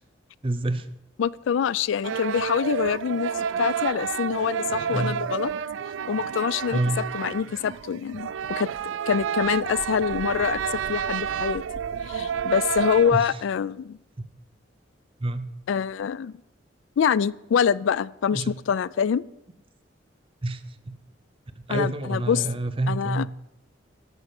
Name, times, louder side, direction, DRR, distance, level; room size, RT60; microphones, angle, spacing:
voice 1, 0.4-0.9 4.9-5.2 6.7-7.0 13.1-13.4 14.2-14.3 15.2-15.5 18.3-18.5 20.4-21.0 21.7-23.3, right 2 dB, 30° right, 11 dB, 0.7 m, -28 dB
voice 2, 1.2-5.5 6.1-6.8 7.1-8.7 9.1-11.6 12.1-14.0 15.7-16.4 17.0-19.2 21.7-22.5 22.9-23.3, left 7 dB, 85° left, 21 dB, 0.3 m, -25 dB
sound 1, 2.0-13.1, right 7 dB, 90° right, 0.4 m, -30 dB
12.5 x 5.0 x 8.1 m, 0.88 s
head